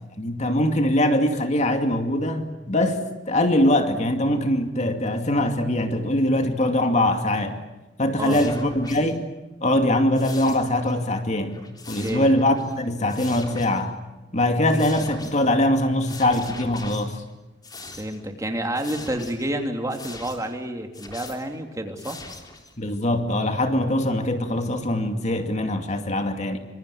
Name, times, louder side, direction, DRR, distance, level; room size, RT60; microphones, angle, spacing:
voice 1, 0.2-7.6 8.0-9.3 9.6-13.9 14.3-17.2 22.8-26.6, left 1 dB, 40° left, 5 dB, 2.4 m, -22 dB
sound 1, 8.2-9.2 10.1-11.0 11.3-12.8 13.1-13.8 14.7-15.5 16.0-17.3 17.6-18.3 18.7-19.5 19.9-20.5 20.9-21.5 21.9-22.7, left 3 dB, 20° left, 3.6 m, -42 dB
voice 2, 18.0-22.2, right 1 dB, 20° right, 4 dB, 3.0 m, -29 dB
26.0 x 26.0 x 8.5 m, 1.1 s
head